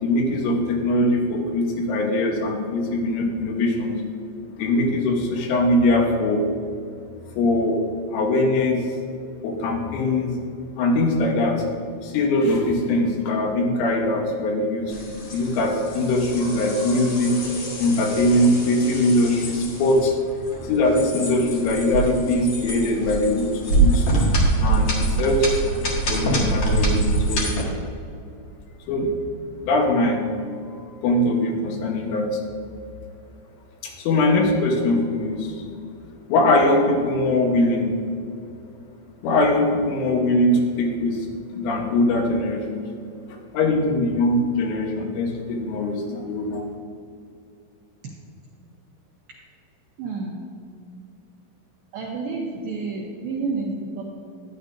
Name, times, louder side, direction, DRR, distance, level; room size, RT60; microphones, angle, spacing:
voice 1, 0.0-4.0 4.6-6.4 7.4-7.8 8.1-8.9 9.4-10.4 10.8-11.6 12.0-14.9 15.3-17.4 17.8-20.1 20.6-23.5 23.8-24.1 24.6-27.7 28.9-29.1 29.6-30.2 30.7-32.4 33.8-35.6 36.3-37.9 39.2-41.3 41.5-42.8 43.5-46.7, left 1 dB, 85° left, 1 dB, 3.7 m, -21 dB
sound 1, 14.9-27.6, right 2 dB, 70° left, 1.4 m, -25 dB
voice 2, 50.0-50.4 51.9-54.0, right 4 dB, 80° right, -3 dB, 2.1 m, -29 dB
12.5 x 10.0 x 2.6 m, 2.5 s
omnidirectional pair, 5.5 m